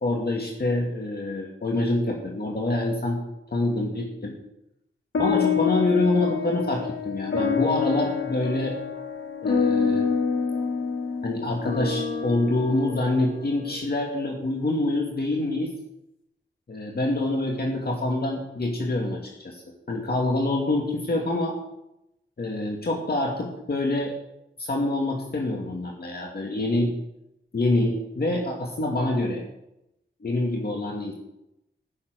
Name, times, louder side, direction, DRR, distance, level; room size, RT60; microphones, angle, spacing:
voice 1, 0.0-3.2 3.5-4.3 5.2-8.7 9.4-10.1 11.2-15.7 16.7-19.6 19.9-21.6 22.4-24.1 24.6-26.9 27.5-29.4 30.2-31.1, left 2 dB, 55° left, 0 dB, 2.3 m, -26 dB
sound 1, 5.1-13.8, left 6 dB, 85° left, 3.6 m, -27 dB
14.5 x 7.5 x 9.1 m, 0.87 s
wide cardioid pair, 105°, 19 cm